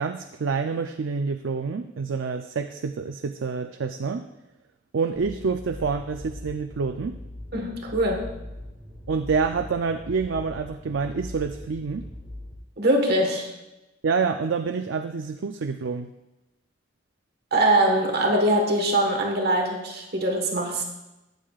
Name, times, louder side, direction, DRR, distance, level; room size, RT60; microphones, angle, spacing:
voice 1, 0.0-4.2 4.9-7.2 9.1-12.1 14.0-16.1, right 5 dB, 70° right, 7 dB, 0.4 m, -27 dB
sound 1, 5.1-12.5, left 1 dB, 20° right, 2.3 m, -41 dB
voice 2, 7.5-8.4 12.8-13.5 17.5-20.8, right 1 dB, 55° right, 1 dB, 1.4 m, -22 dB
13.0 x 9.2 x 2.4 m, 0.96 s
head